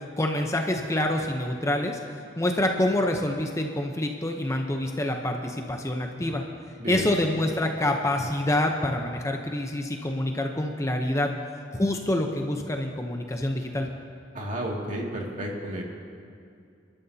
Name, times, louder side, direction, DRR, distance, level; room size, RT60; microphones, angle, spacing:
voice 1, 0.2-2.0 2.4-6.4 6.9-11.3 11.7-13.9, left 1 dB, 15° left, 3 dB, 0.8 m, -26 dB
voice 2, 6.8-7.1 14.3-15.8, right 1 dB, 45° right, -2 dB, 2.3 m, -32 dB
27.0 x 12.5 x 2.8 m, 2.4 s
head